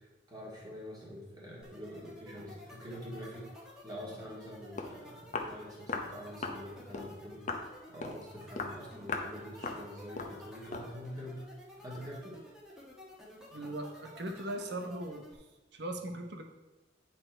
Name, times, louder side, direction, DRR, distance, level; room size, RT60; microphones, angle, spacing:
voice 1, 0.0-3.5 3.8-7.5 7.9-11.4 11.8-12.4, equal, 20° right, -5 dB, 2.0 m, -45 dB
sound 1, 1.6-15.3, left 1 dB, 5° right, 1.4 m, -52 dB
Walk footsteps, 4.4-4.5 4.8-5.0 5.3-5.5 5.9-6.1 6.4-6.6 6.9-7.1 7.5-7.7 8.0-8.2 8.6-8.8 9.1-9.3 9.6-9.8 10.2-10.4 10.7-10.9, left 3 dB, 40° left, 0.8 m, -37 dB
voice 2, 13.5-15.5 15.7-16.4, right 1 dB, 60° right, 5 dB, 0.9 m, -39 dB
10.0 x 4.4 x 4.4 m, 1.2 s
head